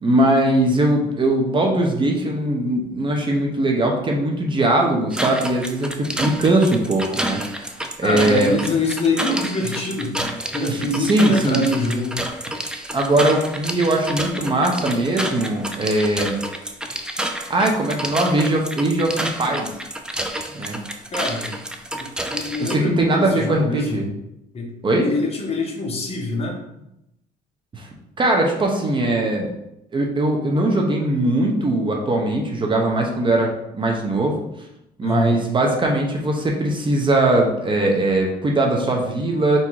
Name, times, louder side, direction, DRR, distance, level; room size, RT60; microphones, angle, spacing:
voice 1, 0.0-7.4 8.0-8.5 10.7-11.7 12.9-16.4 17.5-19.7 20.5-20.8 22.6-24.1 24.8-25.1 27.7-27.9 28.2-29.5 29.9-34.4 35.0-39.6, right 1 dB, 30° right, 0 dB, 0.8 m, -20 dB
sound 1, 5.1-22.8, right 1 dB, 5° right, 0.4 m, -29 dB
voice 2, 8.0-12.2 21.1-21.6 22.0-24.1 24.5-24.7 25.0-26.6 35.0-35.4, left 2 dB, 35° left, 0 dB, 1.0 m, -25 dB
3.6 x 2.7 x 4.6 m, 0.85 s
cardioid pair, 110°, 17 cm